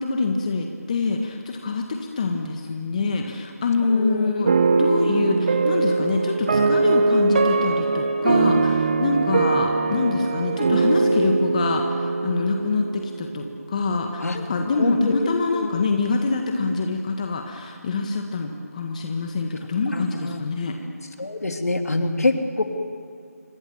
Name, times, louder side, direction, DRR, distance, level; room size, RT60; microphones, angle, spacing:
voice 1, 0.0-20.8, left 4 dB, 25° left, 4 dB, 1.6 m, -25 dB
voice 2, 3.9-4.3 14.2-14.4 14.8-15.8 19.9-20.4 21.2-22.6, left 2 dB, 65° left, 5 dB, 3.1 m, -25 dB
sound 1, 4.5-13.6, right 3 dB, 35° right, 1.6 m, -21 dB
27.5 x 24.5 x 7.3 m, 2.4 s
figure-of-eight pair, 165°, 9 cm